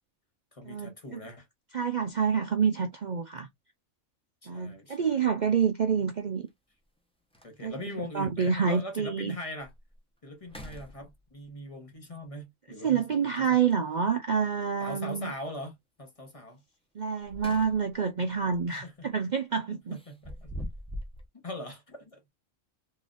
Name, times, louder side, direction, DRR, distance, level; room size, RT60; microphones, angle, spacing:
voice 1, 0.5-1.5 4.4-5.3 7.4-9.7 10.2-13.7 14.8-16.6 18.7-19.1 19.7-20.5 21.4-22.3, left 1 dB, 25° left, 1.2 m, -41 dB
voice 2, 1.7-3.5 4.5-6.5 7.6-7.7 8.1-9.4 12.8-15.3 17.0-20.0, right 6 dB, 60° right, 0.4 m, -27 dB
sound 1, 4.7-4.8 6.5-6.6 7.0-7.1 7.3-7.9 8.5-8.6 9.1-9.2 9.6-10.0 10.4-11.5 13.6-14.2 17.0-18.0 18.4-18.6 19.9-21.3, equal, 5° left, 0.7 m, -43 dB
3.8 x 3.2 x 2.5 m
omnidirectional pair, 1.4 m